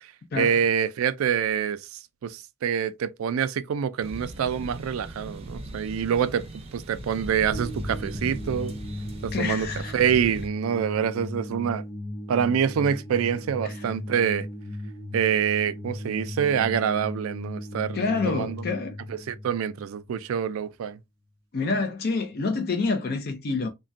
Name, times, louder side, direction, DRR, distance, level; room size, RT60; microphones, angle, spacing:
voice 1, 0.4-1.8 2.2-6.5 6.7-8.7 9.2-9.7 9.9-11.8 12.3-14.5 15.1-18.7 19.1-21.0, right 8 dB, 85° right, 0.3 m, -26 dB
sound 1, 4.0-10.5, right 1 dB, 30° right, 0.5 m, -39 dB
sound 2, 7.5-20.6, left 1 dB, 65° left, 1.2 m, -37 dB
voice 2, 9.3-10.0 13.6-13.7 17.9-19.0 21.5-23.7, left 4 dB, 50° left, 0.4 m, -27 dB
3.3 x 2.2 x 2.5 m
head